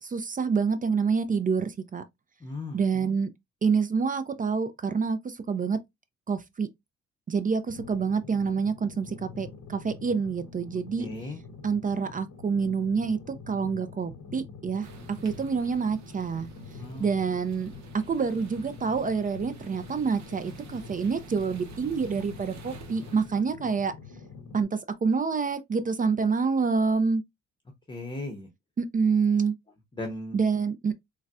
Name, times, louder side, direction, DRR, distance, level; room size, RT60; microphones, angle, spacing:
voice 1, 0.0-2.0 2.7-3.3 3.6-5.8 6.3-6.7 7.3-11.1 11.6-16.5 17.0-23.9 24.5-27.2 28.8-29.5 30.3-30.9, right 5 dB, 30° right, 0.4 m, -27 dB
voice 2, 2.4-2.8 11.0-11.4 16.7-17.1 27.9-28.5 29.9-30.4, left 2 dB, 15° left, 0.7 m, -36 dB
sound 1, 7.7-24.6, left 5 dB, 75° left, 0.9 m, -45 dB
sound 2, 14.8-23.6, right 5 dB, 65° right, 0.7 m, -49 dB
3.9 x 2.1 x 2.3 m
cardioid pair, 90°, 30 cm